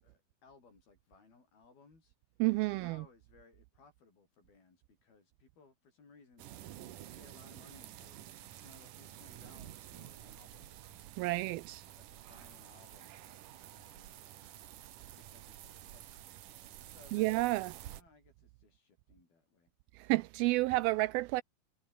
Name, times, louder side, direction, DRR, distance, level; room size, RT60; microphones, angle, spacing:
voice 1, 0.0-2.1 2.7-6.5 7.2-8.2 8.6-10.8 11.6-13.1 13.7-14.2 15.1-16.5 16.9-17.3 17.9-19.7, left 4 dB, 65° left, 9.1 m, -62 dB
voice 2, 2.4-3.1 11.2-11.8 17.1-17.8 20.0-21.4, right 20 dB, 80° right, 2.2 m, -30 dB
sound 1, 6.4-18.0, right 12 dB, 65° right, 2.6 m, -51 dB
omnidirectional pair, 4.6 m